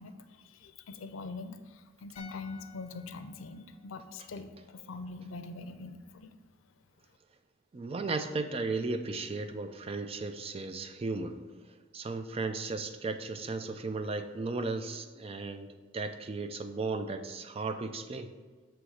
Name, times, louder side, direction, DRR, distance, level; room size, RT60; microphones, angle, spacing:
voice 1, 0.0-6.3, left 3 dB, 90° left, 9 dB, 0.5 m, -43 dB
sound 1, 2.2-5.4 5.6-5.8, left 5 dB, 35° left, 0.8 m, -56 dB
voice 2, 7.7-11.4 11.9-18.3, right 3 dB, 30° right, 8 dB, 0.3 m, -35 dB
7.6 x 3.0 x 4.8 m, 1.4 s
head